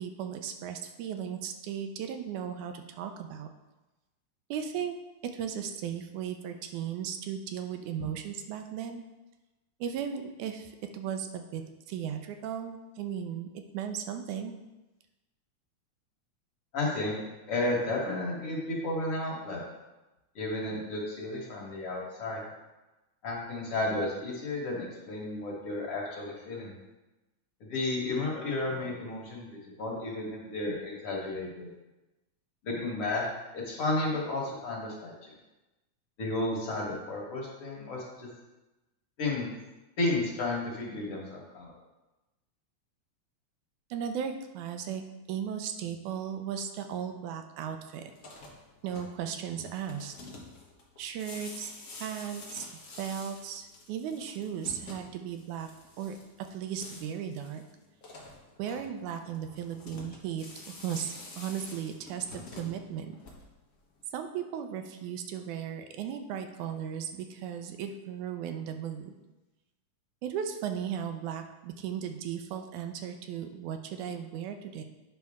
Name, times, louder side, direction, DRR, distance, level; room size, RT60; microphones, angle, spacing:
voice 1, 0.0-3.5 4.5-5.0 5.3-9.0 9.8-11.6 11.9-14.5 43.9-48.1 48.8-50.1 51.0-51.7 52.0-52.7 53.0-55.7 56.0-56.2 56.5-57.6 58.6-63.2 64.1-69.1 70.2-74.8, right 8 dB, 80° right, 6 dB, 2.1 m, -36 dB
voice 2, 16.7-17.2 17.5-19.6 20.4-22.4 23.2-26.7 27.6-31.7 32.6-33.2 33.5-35.1 36.2-38.3 39.2-39.5 40.0-41.7, left 2 dB, 50° left, -3 dB, 2.2 m, -32 dB
sound 1, 48.1-63.7, left 2 dB, 75° left, 0.7 m, -48 dB
9.5 x 5.7 x 3.6 m, 1.1 s
omnidirectional pair, 3.5 m